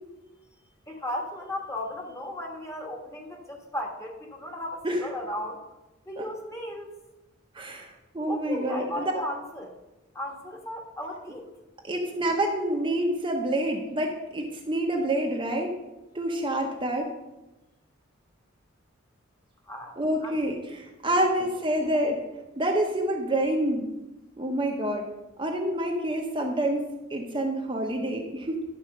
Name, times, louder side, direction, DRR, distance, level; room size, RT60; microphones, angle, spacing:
voice 1, 0.9-5.6 6.1-6.9 8.3-9.7 10.1-11.5 19.7-20.4 21.1-21.2, left 1 dB, 15° left, 0 dB, 1.4 m, -35 dB
voice 2, 7.5-9.1 11.8-15.7 16.1-17.1 20.0-22.2 22.6-23.9 24.4-25.1 25.4-28.6, right 1 dB, 25° right, 1 dB, 0.9 m, -27 dB
11.0 x 4.3 x 6.5 m, 1.0 s
head